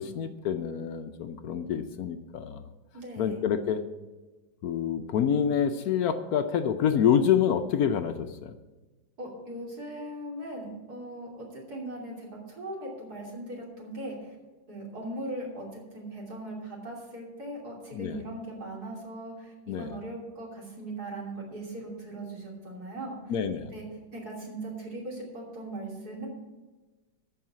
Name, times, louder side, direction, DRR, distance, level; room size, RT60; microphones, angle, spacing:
voice 1, 0.0-2.7 3.2-3.8 4.6-8.6 17.9-18.2 19.7-19.9 23.3-23.7, left 8 dB, 70° left, 9 dB, 0.9 m, -27 dB
voice 2, 2.9-3.5 9.2-14.4 14.7-23.3 23.7-23.8 24.1-26.3, right 1 dB, 50° right, -3 dB, 3.5 m, -39 dB
13.5 x 4.9 x 8.5 m, 1.2 s
omnidirectional pair, 2.2 m